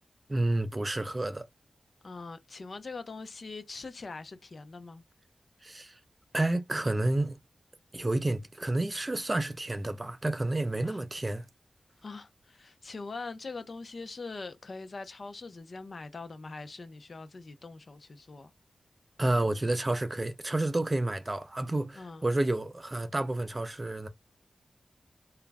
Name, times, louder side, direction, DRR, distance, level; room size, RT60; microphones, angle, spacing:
voice 1, 0.3-1.5 5.6-5.9 6.3-7.4 7.9-11.4 19.2-24.1, right 2 dB, 20° right, 0.3 m, -30 dB
voice 2, 2.0-5.0 10.8-11.0 12.0-18.5 21.9-22.2, left 3 dB, 50° left, 0.5 m, -42 dB
2.3 x 2.0 x 3.3 m
wide cardioid pair, 140°, 0 cm